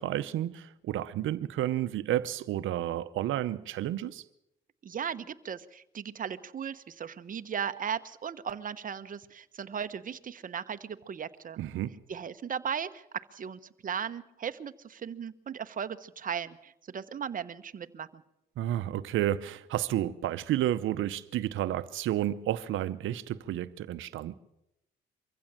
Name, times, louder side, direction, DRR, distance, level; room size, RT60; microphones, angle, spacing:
voice 1, 0.0-4.2 11.6-12.0 18.6-24.4, right 12 dB, 80° right, 0.9 m, -31 dB
voice 2, 4.8-11.6 12.1-18.2, right 7 dB, 45° right, 1.0 m, -37 dB
24.0 x 15.5 x 7.5 m
cardioid pair, 90°, 20 cm